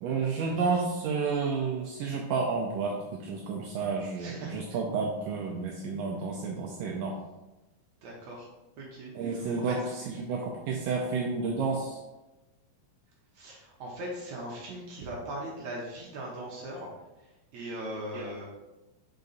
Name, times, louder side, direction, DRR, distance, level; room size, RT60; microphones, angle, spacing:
voice 1, 0.0-7.2 9.2-9.8 10.2-12.0 18.1-18.3, right 4 dB, 85° right, 0 dB, 1.9 m, -31 dB
voice 2, 4.2-4.6 8.0-8.5 8.8-9.8 13.3-16.9 17.2-18.5, right 1 dB, 70° right, -3 dB, 1.8 m, -40 dB
6.6 x 4.7 x 4.0 m, 1.0 s
omnidirectional pair, 4.6 m